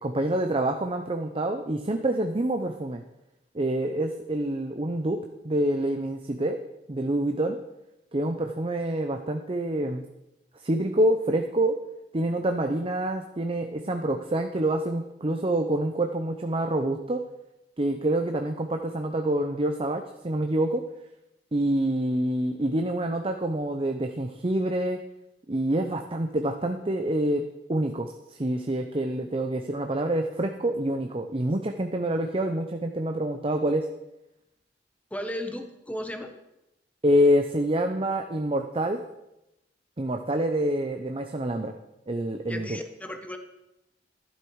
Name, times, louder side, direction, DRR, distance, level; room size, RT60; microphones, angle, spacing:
voice 1, 0.0-3.0 3.5-5.2 5.4-6.6 6.9-7.6 8.1-10.0 10.5-11.8 12.1-17.2 17.8-20.8 21.5-25.0 25.5-33.9 37.0-39.0 40.0-41.7 42.1-42.8, right 1 dB, 30° right, 5 dB, 0.7 m, -27 dB
voice 2, 35.1-36.3 42.5-43.4, equal, 10° left, 6 dB, 1.1 m, -35 dB
13.0 x 11.5 x 4.8 m, 0.91 s
head